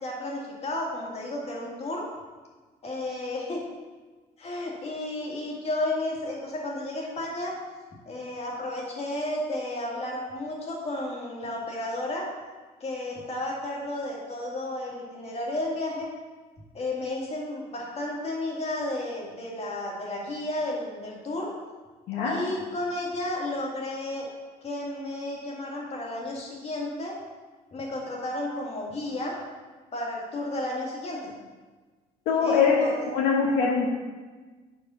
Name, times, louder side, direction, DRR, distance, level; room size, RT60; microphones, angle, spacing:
voice 1, 0.0-2.0 2.8-3.6 4.4-7.5 8.1-12.3 12.8-16.1 16.7-21.5 22.2-24.3 24.6-27.2 27.7-29.4 29.9-31.3 32.4-33.0, left 1 dB, 40° left, -2 dB, 1.9 m, -32 dB
voice 2, 32.3-32.8 33.1-33.9, left 5 dB, 70° left, -4 dB, 1.1 m, -22 dB
5.1 x 4.7 x 5.6 m, 1.4 s
supercardioid pair, 80°, 17 cm